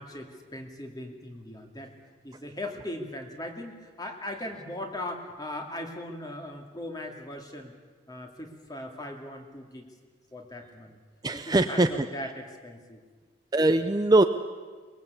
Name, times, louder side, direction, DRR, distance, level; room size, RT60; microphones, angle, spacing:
voice 1, 0.0-1.9 2.2-7.7 8.1-9.9 10.3-11.0 11.3-13.0, left 1 dB, 20° left, 3 dB, 2.6 m, -39 dB
voice 2, 11.2-12.1 13.5-14.2, right 2 dB, 20° right, 8 dB, 0.6 m, -22 dB
23.0 x 21.5 x 8.3 m, 1.5 s
head